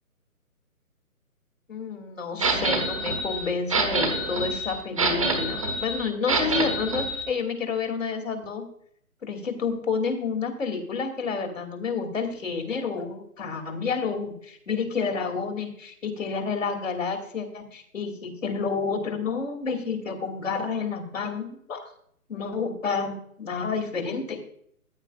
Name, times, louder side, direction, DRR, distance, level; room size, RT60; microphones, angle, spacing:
voice 1, 1.7-8.6 9.2-21.9 22.3-24.4, left 5 dB, 60° left, 4 dB, 2.9 m, -30 dB
sound 1, 2.4-7.2, right 2 dB, 20° right, 1.0 m, -26 dB
15.0 x 10.5 x 2.5 m, 0.66 s
hypercardioid pair, 170°, 44 cm